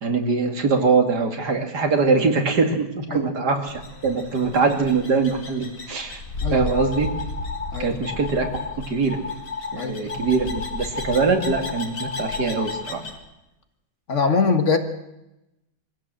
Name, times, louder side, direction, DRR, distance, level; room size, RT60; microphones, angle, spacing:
voice 1, 0.0-6.2 6.5-7.1 7.8-8.5 8.9-9.2 9.7-13.0, right 4 dB, 75° right, 5 dB, 2.9 m, -22 dB
sound 1, 3.7-13.2, left 2 dB, 65° left, 3.0 m, -35 dB
sound 2, 6.7-7.7 8.1-8.7 9.1-9.7 10.1-12.8, left 5 dB, 80° left, 4.6 m, -32 dB
voice 2, 9.8-10.2 14.1-14.8, left 4 dB, 45° left, 7 dB, 1.9 m, -23 dB
23.5 x 15.5 x 7.7 m, 0.92 s
omnidirectional pair, 1.7 m